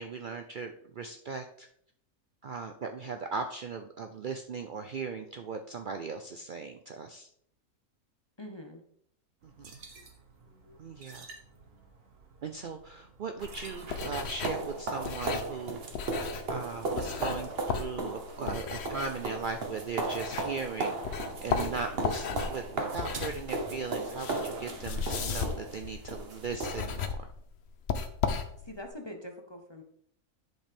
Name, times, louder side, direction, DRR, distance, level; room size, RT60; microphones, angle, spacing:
voice 1, 0.0-1.7 2.4-7.3 9.4-9.7 10.8-11.3 12.4-15.8 16.5-27.3, right 5 dB, 85° right, 6 dB, 0.4 m, -38 dB
voice 2, 8.4-8.8 28.6-29.8, left 1 dB, 25° left, 3 dB, 0.6 m, -43 dB
sound 1, 9.4-14.4, right 4 dB, 65° right, 1.6 m, -53 dB
sound 2, 13.4-20.7 21.0-28.9, left 6 dB, 55° left, 0.9 m, -36 dB
sound 3, 13.4-27.1, right 3 dB, 45° right, 1.1 m, -36 dB
10.5 x 5.3 x 3.4 m, 0.66 s
omnidirectional pair, 1.6 m